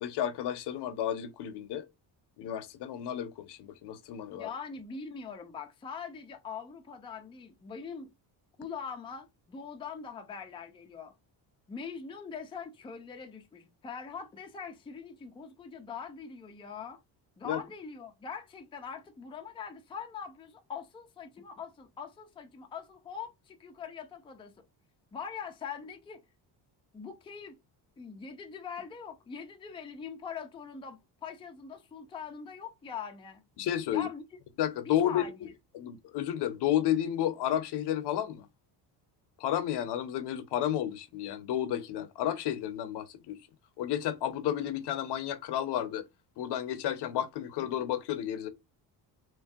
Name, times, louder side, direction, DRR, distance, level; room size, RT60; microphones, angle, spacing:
voice 1, 0.0-1.8 2.4-4.5 17.4-17.6 33.6-34.1 34.6-35.2 35.7-38.5 39.4-43.4 43.8-46.0 46.4-48.5, left 11 dB, 65° left, 0.6 m, -31 dB
voice 2, 4.3-8.1 8.6-11.1 11.7-17.0 17.4-24.5 25.1-26.2 26.9-27.6 28.0-33.4 33.9-34.2 34.8-35.5, left 6 dB, 10° left, 0.4 m, -42 dB
3.0 x 2.6 x 2.2 m
cardioid pair, 125°, 44 cm